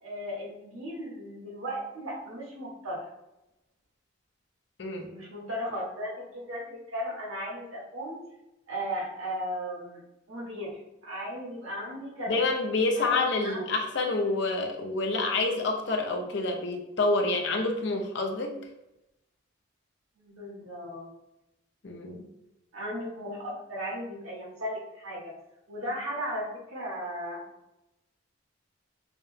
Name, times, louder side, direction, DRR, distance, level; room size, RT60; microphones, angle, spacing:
voice 1, 0.0-3.0 5.0-8.2 8.7-10.0 10.3-12.4 13.0-13.6 20.2-21.1 22.7-25.3 25.7-27.4, equal, 90° right, -3 dB, 1.4 m, -36 dB
voice 2, 4.8-5.1 12.3-18.7 21.8-22.3, left 3 dB, 60° left, 2 dB, 0.6 m, -28 dB
5.7 x 2.0 x 2.7 m, 0.91 s
head